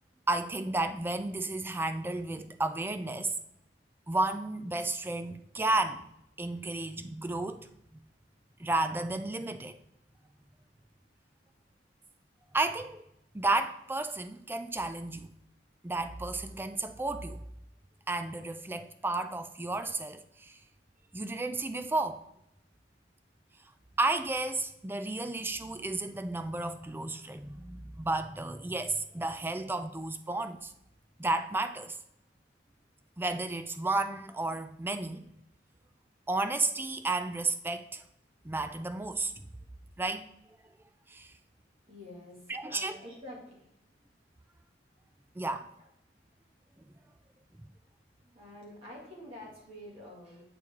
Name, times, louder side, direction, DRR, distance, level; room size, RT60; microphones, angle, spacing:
voice 1, 0.3-3.3 4.1-6.1 6.4-8.0 8.6-9.8 12.5-13.0 13.3-15.3 15.8-17.4 18.1-20.6 21.1-22.2 24.0-30.7 31.2-32.0 33.2-35.2 36.3-38.0 38.4-39.4 40.0-40.3 41.1-41.3 42.5-43.0 45.4-45.7, right 2 dB, 10° right, 0.3 m, -32 dB
voice 2, 41.9-43.7 48.3-50.4, left 1 dB, 30° right, 2.1 m, -47 dB
8.5 x 4.6 x 3.6 m
head